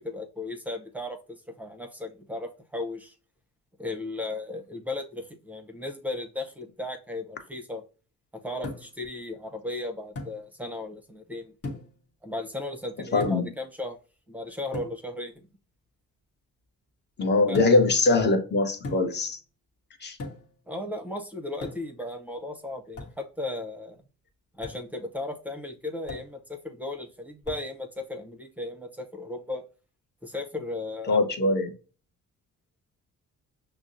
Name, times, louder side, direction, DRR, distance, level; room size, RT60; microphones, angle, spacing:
voice 1, 0.0-3.2 3.8-7.8 8.4-11.5 12.2-14.0 14.3-15.5 17.5-17.8 20.7-24.0 24.5-29.6 30.2-31.2, left 2 dB, 5° right, 5 dB, 0.7 m, -36 dB
sound 1, 8.6-9.1 10.2-10.4 11.6-12.0 13.2-13.6 14.7-15.0 17.5-17.9 18.8-19.3 20.2-20.6 21.6-22.0 23.0-23.2 24.6-24.9 26.1-26.4 27.4-27.7, left 2 dB, 50° left, 1.1 m, -38 dB
voice 2, 13.1-13.5 17.2-19.4 20.0-20.2 31.1-31.7, left 3 dB, 35° left, 6 dB, 0.9 m, -22 dB
6.0 x 2.0 x 2.6 m, 0.35 s
cardioid pair, 90°, 30 cm